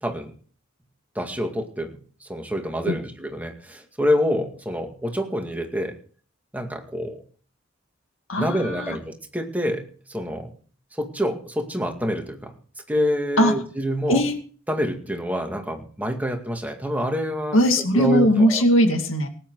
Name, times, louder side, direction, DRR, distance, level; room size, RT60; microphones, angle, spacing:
voice 1, 1.2-5.9 6.5-7.2 8.4-9.0 9.3-10.5 11.0-12.5 12.9-14.2 14.7-17.6 17.9-18.6, equal, 10° right, 3 dB, 2.2 m, -27 dB
voice 2, 8.3-9.0 13.4-13.5 14.1-14.4 17.5-19.3, equal, 75° left, 6 dB, 2.2 m, -19 dB
19.0 x 10.0 x 4.8 m, 0.42 s
head